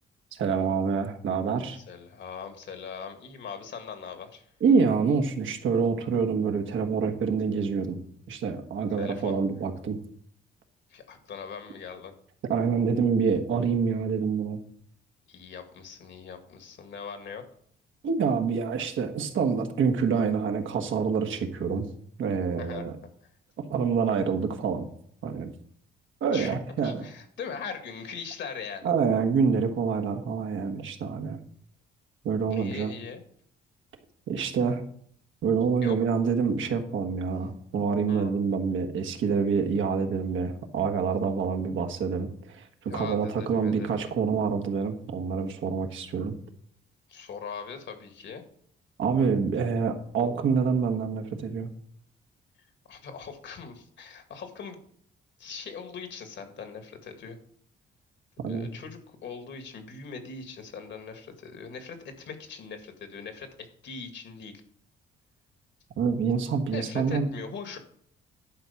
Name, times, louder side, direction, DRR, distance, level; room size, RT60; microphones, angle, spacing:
voice 1, 0.3-1.8 4.6-8.0 8.3-10.0 12.5-14.6 18.0-21.9 22.2-23.0 23.7-24.9 25.2-25.5 26.2-27.1 28.8-31.4 32.2-32.9 34.3-34.8 35.4-46.3 49.0-51.7 58.4-58.7 66.0-67.3, right 5 dB, 75° right, 5 dB, 1.6 m, -26 dB
voice 2, 1.7-4.4 9.0-9.3 10.9-12.1 15.3-17.4 22.6-22.8 26.3-26.6 26.8-28.9 32.5-33.2 35.8-36.0 38.1-38.3 42.9-44.0 47.1-48.4 52.9-54.8 55.4-57.4 58.5-64.5 66.7-67.8, left 6 dB, 65° left, 6 dB, 2.1 m, -40 dB
11.5 x 4.6 x 7.1 m, 0.63 s
cardioid pair, 90°, 20 cm